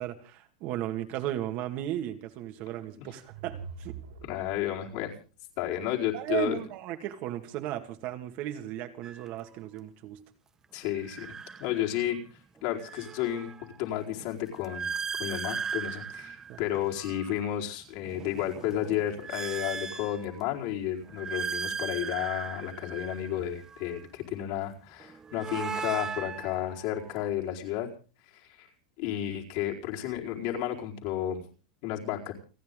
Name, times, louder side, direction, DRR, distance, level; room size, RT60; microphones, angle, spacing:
voice 1, 0.0-4.0 6.1-10.2 16.5-16.6, right 12 dB, 45° right, 6 dB, 2.1 m, -35 dB
sound 1, 3.0-5.0, right 6 dB, 85° right, 6.1 m, -44 dB
voice 2, 4.2-5.1 5.6-6.6 10.7-11.3 11.6-12.2 12.6-14.9 15.2-27.9 28.3-28.7 29.0-31.4 31.8-32.3, left 11 dB, 55° left, -1 dB, 4.6 m, -32 dB
sound 2, 9.0-9.3 11.0-12.2 12.6-17.4 17.9-20.6 21.0-24.0 25.0-27.3, right 6 dB, 15° right, 0.8 m, -38 dB
29.5 x 10.5 x 3.8 m, 0.37 s
supercardioid pair, 150°, 4 cm